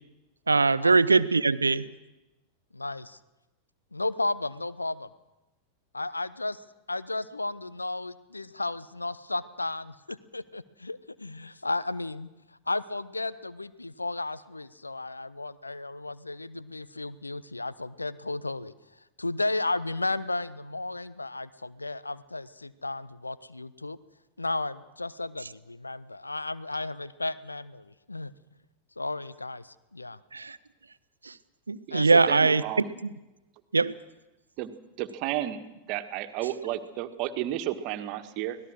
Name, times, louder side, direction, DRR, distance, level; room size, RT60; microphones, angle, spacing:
voice 1, 0.5-1.8 30.3-30.6 31.2-31.3 31.7-32.6 33.7-33.9, right 4 dB, 80° right, 16 dB, 0.8 m, -21 dB
voice 2, 2.7-3.2 3.9-5.1 5.9-6.6 6.9-12.3 12.7-18.7 19.2-24.0 24.4-28.3 29.0-30.2 31.9-32.3, left 2 dB, 80° left, 15 dB, 0.9 m, -34 dB
voice 3, 31.9-32.9 34.6-34.7 35.0-35.6 35.9-38.6, right 13 dB, 40° right, 9 dB, 1.6 m, -32 dB
25.0 x 18.5 x 6.5 m, 1.0 s
figure-of-eight pair, 90°, 0 cm